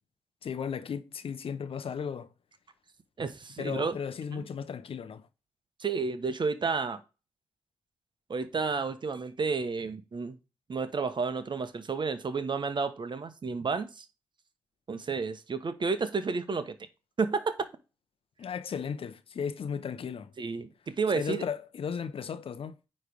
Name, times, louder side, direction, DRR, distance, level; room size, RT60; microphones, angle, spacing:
voice 1, 0.4-2.3 3.6-5.2 18.4-20.3 21.1-22.8, left 7 dB, 60° left, 0.7 m, -35 dB
voice 2, 3.2-4.0 4.3-4.4 5.8-7.0 8.3-10.4 10.7-14.1 14.9-16.8 17.2-17.5 20.4-21.4, right 4 dB, 50° right, 1.1 m, -31 dB
9.3 x 3.3 x 5.2 m
supercardioid pair, 45°, 11 cm